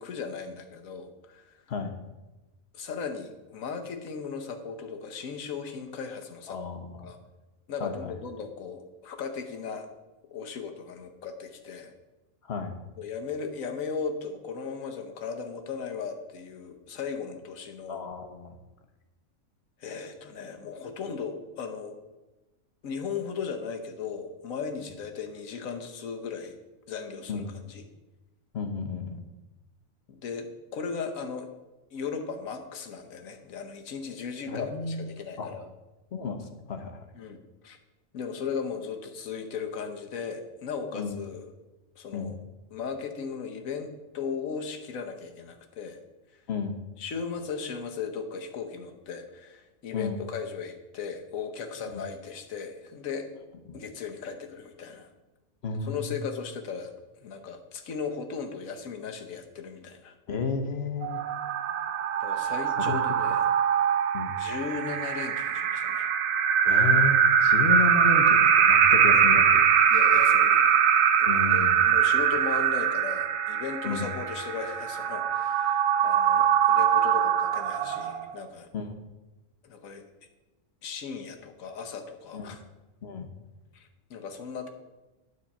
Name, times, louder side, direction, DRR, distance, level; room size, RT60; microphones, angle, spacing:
voice 1, 0.0-1.6 2.7-6.6 7.0-7.2 7.7-9.9 10.3-11.9 13.0-18.0 19.8-22.0 22.8-26.6 26.9-27.9 30.1-31.5 31.9-35.6 37.1-37.4 37.6-37.8 38.1-41.5 42.0-42.4 42.7-46.0 47.0-53.3 53.7-55.1 55.8-60.1 62.2-63.5 64.4-66.1 68.6-68.8 69.9-70.8 71.2-78.7 79.6-80.1 80.8-82.6 83.7-84.7, left 5 dB, 80° left, 6 dB, 1.3 m, -37 dB
voice 2, 6.5-7.1 7.8-8.1 12.5-12.8 17.9-18.6 27.3-27.5 28.5-29.2 34.5-35.1 35.4-35.5 36.1-37.1 40.9-41.2 42.1-42.4 46.5-46.8 49.9-50.2 51.9-52.1 53.7-53.8 55.6-56.1 60.3-61.2 62.7-63.0 64.1-64.4 66.6-69.7 71.2-71.8 73.8-74.1 78.7-79.1 82.3-82.6 83.0-83.3, left 4 dB, 55° left, 6 dB, 1.1 m, -32 dB
sound 1, 61.0-78.4, right 8 dB, 75° right, 1.0 m, -22 dB
9.5 x 4.2 x 7.0 m, 1.1 s
omnidirectional pair, 1.4 m